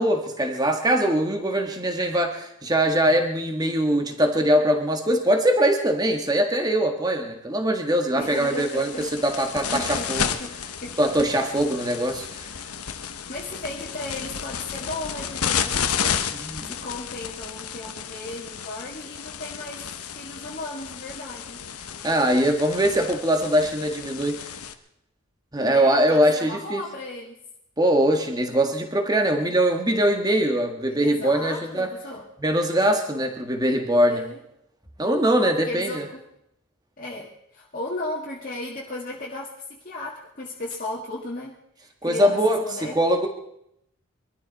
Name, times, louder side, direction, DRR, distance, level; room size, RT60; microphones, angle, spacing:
voice 1, 0.0-10.3 11.0-12.5 16.3-16.7 22.0-24.5 25.5-26.8 27.8-31.9 32.4-34.2 35.0-36.0 42.0-43.3, right 1 dB, 15° right, 4 dB, 1.7 m, -22 dB
sound 1, 8.2-24.7, left 7 dB, 90° left, 1.1 m, -32 dB
voice 2, 8.2-9.0 9.7-11.0 13.1-19.9 20.1-21.6 25.6-27.4 31.0-32.3 34.1-34.4 35.6-36.2 37.0-41.5 42.1-43.0, left 2 dB, 40° left, -4 dB, 2.0 m, -35 dB
23.5 x 13.5 x 4.2 m, 0.78 s
head